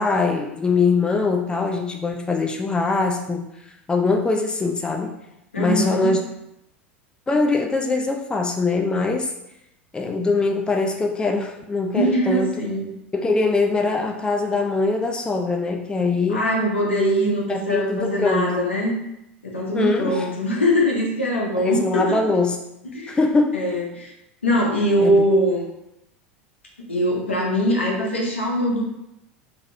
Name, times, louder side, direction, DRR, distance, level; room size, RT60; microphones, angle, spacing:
voice 1, 0.0-5.1 5.6-6.2 7.3-9.3 9.9-12.6 13.1-16.5 17.5-18.5 19.7-20.3 21.6-22.6 23.1-23.6 25.0-25.2, left 3 dB, 15° left, 2 dB, 0.5 m, -22 dB
voice 2, 5.5-6.1 11.9-12.9 16.3-18.9 19.4-22.2 22.8-23.2 23.5-24.1 24.4-25.7 26.9-28.8, equal, 85° left, -2 dB, 1.0 m, -22 dB
3.8 x 3.1 x 3.6 m, 0.85 s
figure-of-eight pair, 80°, 6 cm